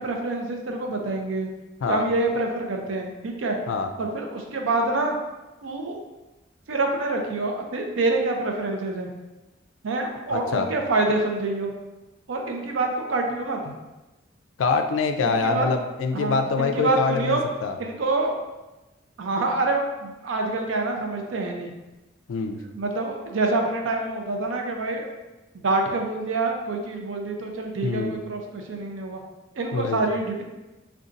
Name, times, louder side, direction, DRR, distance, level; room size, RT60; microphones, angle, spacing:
voice 1, 0.0-1.5 1.9-3.6 4.0-5.2 5.6-6.0 6.7-9.1 9.8-11.7 12.3-13.7 15.2-15.7 16.1-17.4 17.8-18.3 19.2-21.7 22.7-25.1 25.5-29.2 29.6-30.4, right 2 dB, 85° right, 2 dB, 0.5 m, -26 dB
voice 2, 10.3-10.7 14.6-17.7 22.3-22.6 27.8-28.2 29.7-30.0, left 4 dB, 80° left, 6 dB, 0.3 m, -25 dB
2.5 x 2.3 x 3.8 m, 1.1 s
head